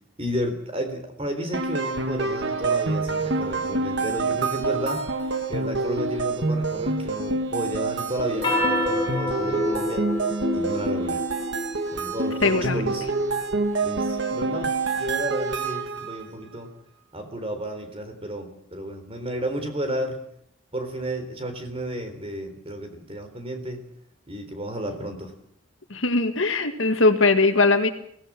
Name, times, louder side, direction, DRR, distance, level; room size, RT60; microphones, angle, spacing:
voice 1, 0.2-5.0 5.5-10.1 10.5-11.2 11.9-13.1 13.8-14.7 15.0-16.7 17.1-20.2 20.7-23.8 24.3-25.3, equal, 25° right, 6 dB, 3.8 m, -32 dB
sound 1, 1.5-16.2, right 3 dB, 55° right, 1.9 m, -27 dB
sound 2, 8.3-13.1, left 1 dB, 20° left, 6.3 m, -28 dB
voice 2, 12.4-12.8 25.9-27.9, left 3 dB, 65° left, 8 dB, 1.9 m, -20 dB
23.0 x 17.0 x 7.6 m, 0.68 s
head